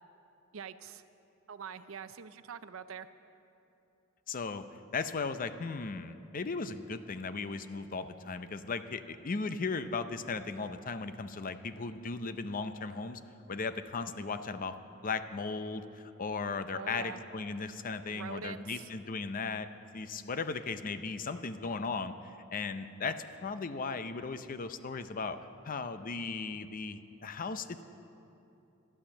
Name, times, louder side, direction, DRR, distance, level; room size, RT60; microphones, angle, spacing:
voice 1, 0.5-1.0 1.5-3.1 16.7-17.2 18.1-18.9, right 6 dB, 75° right, 12 dB, 0.5 m, -44 dB
voice 2, 4.3-4.6 4.9-13.2 13.5-14.8 15.0-19.7 19.9-25.4 25.6-27.8, left 4 dB, 40° left, 11 dB, 0.6 m, -37 dB
12.0 x 11.5 x 7.2 m, 2.8 s
head